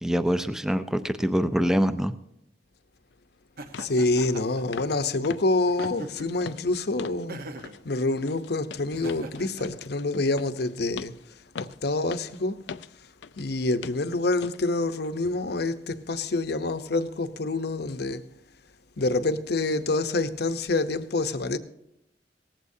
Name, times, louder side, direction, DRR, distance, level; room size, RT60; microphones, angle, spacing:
voice 1, 0.0-2.1, equal, 5° right, 0.5 m, -24 dB
sound 1, 3.1-3.2 3.7-4.0 4.2-4.4 4.7-5.0 5.2-7.3 7.6-7.8 8.2-13.5 13.8-14.1 14.4-14.6 15.0-15.2, left 5 dB, 80° left, 0.5 m, -42 dB
Laughter, 3.6-4.6 5.7-6.4 7.3-7.8 8.9-9.7, right 2 dB, 55° right, 1.0 m, -41 dB
voice 2, 3.8-7.4 7.8-11.1 11.6-12.6 13.4-18.2 19.0-21.6, left 2 dB, 65° left, 0.8 m, -27 dB
18.0 x 15.0 x 2.8 m
head